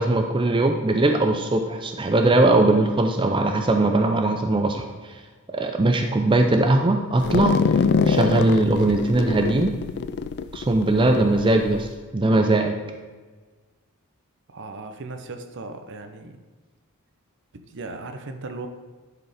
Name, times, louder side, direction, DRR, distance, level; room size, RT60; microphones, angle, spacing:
voice 1, 0.0-4.9 5.5-7.6 8.1-9.7 10.5-11.9 12.1-12.7, right 2 dB, 20° right, 4 dB, 0.5 m, -20 dB
sound 1, 7.2-11.9, left 5 dB, 50° left, 0.3 m, -24 dB
voice 2, 14.5-16.4 17.5-18.7, right 3 dB, 55° right, 7 dB, 0.8 m, -37 dB
11.0 x 4.9 x 5.0 m, 1.4 s
head